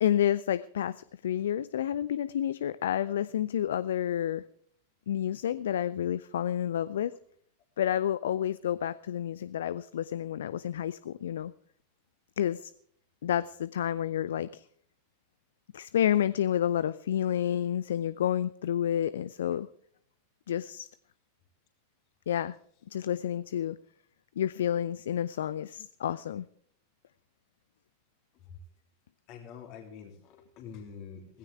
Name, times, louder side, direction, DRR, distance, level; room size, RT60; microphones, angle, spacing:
voice 1, 0.0-4.4 5.1-7.1 7.8-11.5 12.4-12.7 13.2-14.6 15.7-19.7 20.5-20.9 22.3-22.6 22.9-23.8 24.4-26.4, left 10 dB, 60° left, 17 dB, 0.5 m, -29 dB
voice 2, 29.3-31.4, left 7 dB, 40° left, 3 dB, 3.0 m, -46 dB
17.5 x 16.0 x 3.4 m, 0.63 s
figure-of-eight pair, 90°, 0 cm